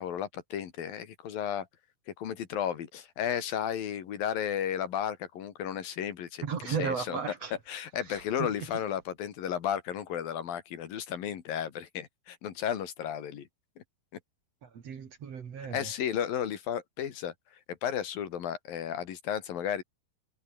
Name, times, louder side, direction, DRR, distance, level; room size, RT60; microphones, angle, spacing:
voice 1, 0.0-1.7 2.2-7.2 7.7-13.5 13.8-13.9 15.6-17.3 17.7-19.8, left 9 dB, 75° left, 3.9 m, -33 dB
voice 2, 6.4-7.5 8.1-8.5 14.6-15.9, right 6 dB, 50° right, 2.9 m, -35 dB
omnidirectional pair, 4.2 m